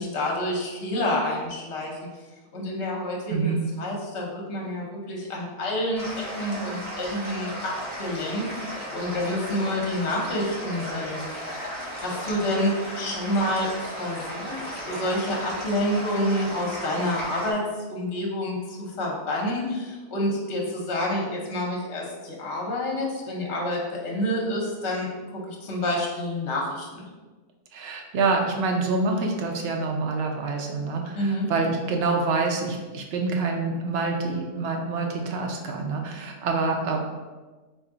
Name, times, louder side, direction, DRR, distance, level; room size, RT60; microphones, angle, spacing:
voice 1, 0.0-2.0 2.5-11.5 12.0-17.6 17.9-27.1 31.1-31.5, left 1 dB, 55° left, -2 dB, 1.0 m, -28 dB
voice 2, 3.3-3.7 27.7-37.0, right 3 dB, 75° right, 1 dB, 0.5 m, -26 dB
sound 1, 5.9-17.5, equal, 20° right, 1.1 m, -35 dB
3.4 x 2.6 x 3.7 m, 1.3 s
omnidirectional pair, 1.6 m